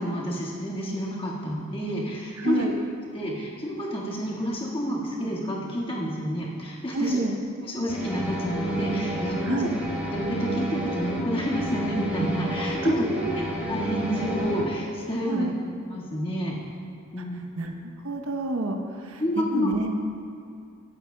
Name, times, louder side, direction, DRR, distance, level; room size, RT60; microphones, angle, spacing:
voice 1, 0.0-2.7 3.1-7.2 7.6-9.6 10.1-13.1 13.4-15.5 15.9-16.6 17.1-17.4 19.2-19.7, equal, 25° left, -5 dB, 1.7 m, -29 dB
voice 2, 2.4-2.7 6.9-7.4 9.4-9.7 12.8-13.4 15.2-15.5 17.6-20.0, right 2 dB, 75° right, 3 dB, 0.9 m, -29 dB
sound 1, 7.9-14.6, right 1 dB, 10° right, 1.6 m, -30 dB
22.0 x 8.5 x 2.3 m, 2.3 s
head